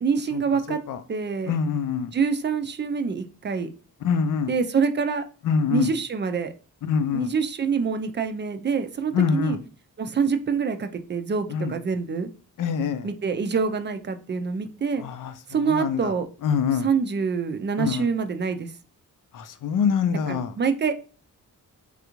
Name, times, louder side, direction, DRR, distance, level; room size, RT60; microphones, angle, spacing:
voice 1, 0.0-0.8 1.1-1.5 2.1-3.7 4.5-5.2 5.7-6.5 7.1-9.6 10.0-12.3 13.0-15.0 15.5-16.3 16.8-18.7 20.3-20.9, right 5 dB, 35° right, 7 dB, 0.4 m, -26 dB
voice 2, 1.5-2.1 4.0-4.5 5.4-5.9 6.8-7.3 9.1-9.6 11.5-11.7 12.6-13.1 15.0-15.3 15.6-16.1 16.4-16.9 17.8-18.1 19.3-20.5, left 6 dB, 70° left, 10 dB, 0.5 m, -24 dB
3.4 x 2.5 x 2.9 m, 0.38 s
cardioid pair, 80°, 33 cm